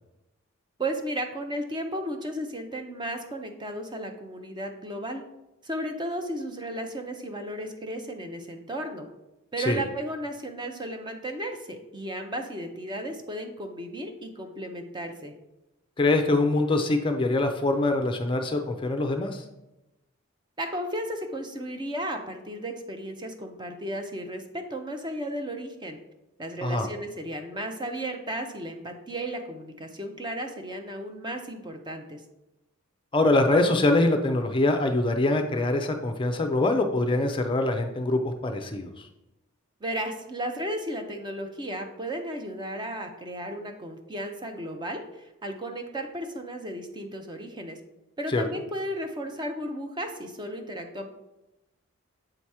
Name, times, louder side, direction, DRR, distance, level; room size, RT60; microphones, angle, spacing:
voice 1, 0.8-5.2 5.6-9.1 9.5-15.3 20.6-26.0 26.4-32.2 39.8-47.8 48.2-51.1, right 1 dB, 20° right, 5 dB, 0.6 m, -34 dB
voice 2, 16.0-19.4 26.6-26.9 33.1-39.1 48.3-48.4, left 2 dB, 25° left, 5 dB, 0.5 m, -24 dB
7.7 x 2.9 x 4.7 m, 0.94 s
head